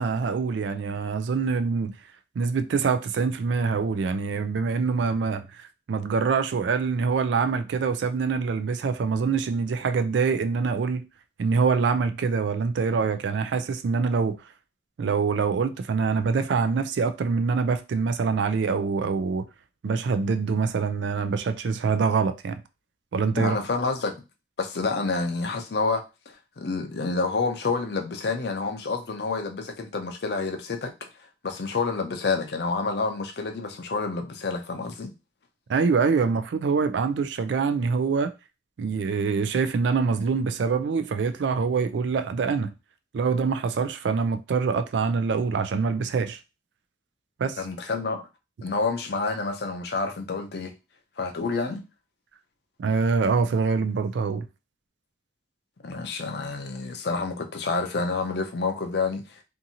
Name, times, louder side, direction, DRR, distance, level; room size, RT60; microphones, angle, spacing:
voice 1, 0.0-1.9 2.4-11.0 11.4-14.4 15.0-19.5 19.8-22.6 23.1-23.6 35.7-38.3 38.8-42.7 43.1-46.4 47.4-47.6 52.8-54.5, right 5 dB, 80° right, 0.3 m, -25 dB
voice 2, 23.4-24.2 24.6-30.9 31.4-35.1 47.6-48.3 48.6-50.7 51.2-51.8 55.8-59.3, left 4 dB, 65° left, 0.5 m, -28 dB
2.7 x 2.5 x 2.7 m
head